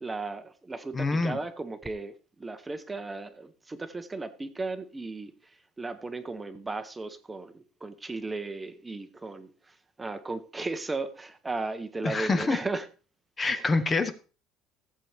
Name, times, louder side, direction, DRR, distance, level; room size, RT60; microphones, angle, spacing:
voice 1, 0.0-12.9 13.5-13.6, right 3 dB, 10° right, 9 dB, 0.8 m, -36 dB
voice 2, 0.9-1.4 12.0-12.6 13.4-14.1, left 3 dB, 20° left, 10 dB, 0.7 m, -26 dB
15.0 x 7.7 x 3.3 m, 0.36 s
cardioid pair, 155°, 0 cm